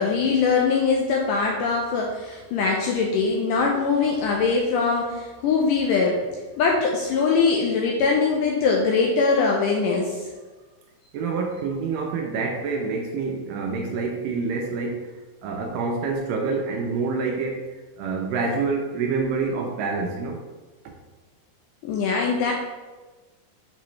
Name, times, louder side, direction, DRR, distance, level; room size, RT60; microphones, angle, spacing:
voice 1, 0.0-6.2 6.6-10.3 21.8-22.5, left 4 dB, 85° left, 0 dB, 1.9 m, -22 dB
voice 2, 11.1-15.1 15.4-17.6 18.0-20.4, right 4 dB, 80° right, 1 dB, 2.0 m, -27 dB
6.9 x 5.0 x 3.1 m, 1.3 s
omnidirectional pair, 4.3 m